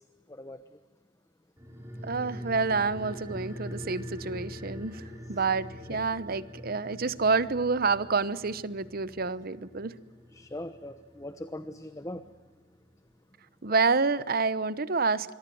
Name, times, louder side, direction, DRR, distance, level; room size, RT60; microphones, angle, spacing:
voice 1, 0.3-0.6 10.3-12.2, left 1 dB, 15° left, 1.1 m, -40 dB
sound 1, 1.6-12.4 12.7-12.8, equal, 15° right, 6.7 m, -44 dB
voice 2, 2.0-5.0 5.3-9.9 13.6-15.3, right 4 dB, 50° right, 1.0 m, -28 dB
26.0 x 23.5 x 7.8 m
head